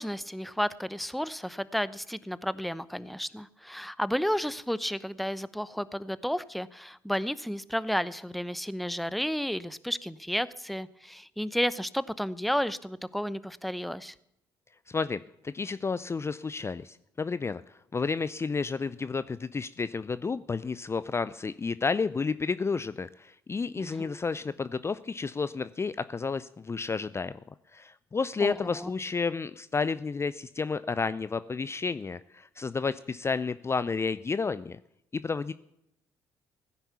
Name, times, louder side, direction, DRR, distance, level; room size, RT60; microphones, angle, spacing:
voice 1, 0.0-14.1 23.8-24.2 28.4-28.9, equal, ahead, 17 dB, 0.8 m, -32 dB
voice 2, 14.9-27.4 27.7-34.8 35.1-35.5, left 4 dB, 25° left, 15 dB, 0.5 m, -31 dB
17.0 x 10.0 x 7.0 m, 0.81 s
hypercardioid pair, 55°, 11 cm